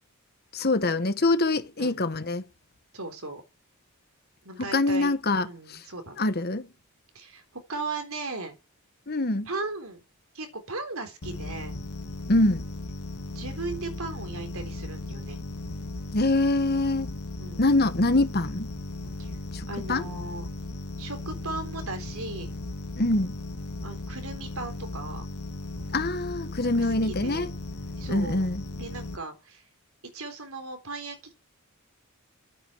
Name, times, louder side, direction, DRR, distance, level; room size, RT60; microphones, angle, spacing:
voice 1, 0.5-2.4 4.6-5.8 6.2-6.7 9.1-9.5 12.3-12.6 16.1-17.2 17.6-18.7 19.5-20.1 23.0-23.4 25.9-27.5 28.1-28.6, left 2 dB, 45° left, 1.2 m, -25 dB
voice 2, 2.9-3.4 4.4-5.1 5.5-6.4 7.1-7.4 7.7-8.5 9.5-10.0 10.3-11.8 13.3-15.4 17.4-17.7 19.2-19.3 19.7-20.4 21.0-22.5 23.8-25.2 26.6-27.5 28.0-28.5 28.7-29.6 30.0-31.3, right 3 dB, 70° right, 3.8 m, -37 dB
sound 1, 11.2-29.2, left 2 dB, 80° left, 1.9 m, -37 dB
13.0 x 9.1 x 7.9 m
head